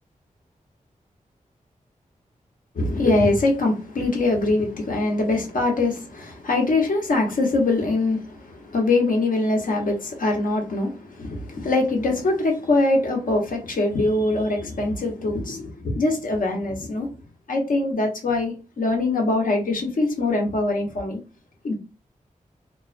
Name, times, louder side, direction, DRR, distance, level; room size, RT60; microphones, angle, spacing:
voice 1, 2.8-15.7 16.0-17.1 17.5-21.2 21.6-21.7, left 2 dB, 80° left, 0.8 m, -23 dB
2.3 x 2.2 x 2.4 m
wide cardioid pair, 80°, 14 cm